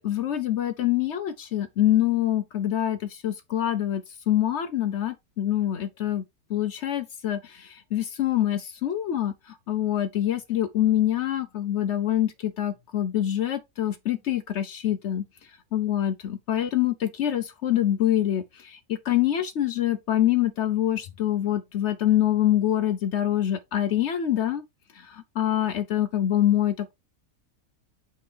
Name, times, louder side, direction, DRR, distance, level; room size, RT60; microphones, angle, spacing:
voice 1, 0.0-6.2 6.5-15.2 15.7-24.6 24.9-26.9, left 12 dB, 65° left, 0.7 m, -25 dB
8.4 x 3.6 x 3.3 m
omnidirectional pair, 1.6 m